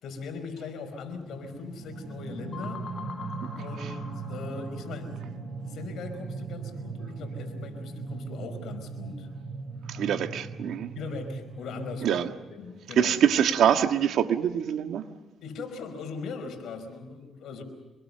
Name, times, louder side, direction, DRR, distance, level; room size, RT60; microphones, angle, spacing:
voice 1, 0.0-2.9 3.6-9.3 10.9-12.2 12.5-13.2 15.4-17.6, left 4 dB, 75° left, 6 dB, 5.1 m, -39 dB
sound 1, 1.1-12.2, right 4 dB, 55° right, 6.2 m, -39 dB
sound 2, 2.5-5.1, left 5 dB, 45° left, 2.1 m, -43 dB
voice 2, 9.9-10.9 12.0-12.3 13.0-15.0, right 9 dB, 75° right, 7 dB, 1.7 m, -24 dB
27.0 x 21.0 x 6.8 m, 1.2 s
cardioid pair, 90°, 0 cm